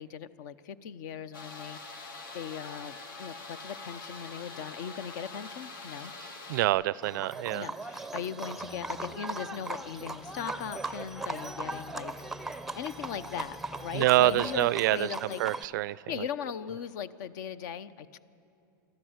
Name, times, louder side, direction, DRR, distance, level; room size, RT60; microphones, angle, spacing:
voice 1, 0.0-6.1 7.5-12.1 12.7-15.4 16.1-18.2, left 8 dB, 60° left, 15 dB, 0.8 m, -39 dB
sound 1, 1.3-6.7, left 3 dB, 85° left, 2.5 m, -44 dB
voice 2, 6.5-7.7 13.9-15.1 15.4-16.0, right 16 dB, 65° right, 21 dB, 0.4 m, -26 dB
Livestock farm animals working animals, 7.0-15.6, right 2 dB, 5° right, 0.6 m, -39 dB
sound 2, 8.6-15.0, left 2 dB, 20° left, 0.9 m, -52 dB
26.5 x 13.0 x 8.0 m, 2.7 s
hypercardioid pair, 130°, 11 cm